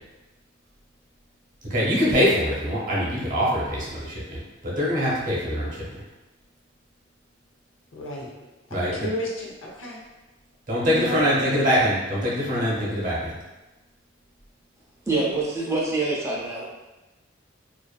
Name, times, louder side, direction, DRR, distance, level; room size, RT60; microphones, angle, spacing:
voice 1, 1.7-5.9 8.7-8.9 10.7-13.4, equal, 40° right, -6 dB, 0.7 m, -23 dB
voice 2, 7.9-8.3 8.7-10.0 10.8-11.3, equal, 85° left, -2 dB, 0.6 m, -33 dB
voice 3, 15.1-16.7, right 3 dB, 15° right, -5 dB, 0.4 m, -25 dB
2.5 x 2.4 x 2.2 m, 1.1 s
head